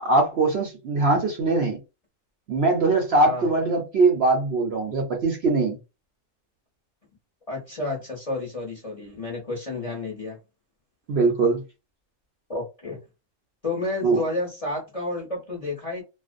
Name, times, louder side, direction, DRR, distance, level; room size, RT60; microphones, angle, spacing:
voice 1, 0.0-1.8 2.5-5.8 11.1-11.6 14.0-14.2, right 3 dB, 60° right, 0.7 m, -21 dB
voice 2, 7.5-10.4 12.5-13.0 13.6-16.0, left 2 dB, 35° left, 0.7 m, -31 dB
2.5 x 2.0 x 2.5 m
omnidirectional pair, 1.5 m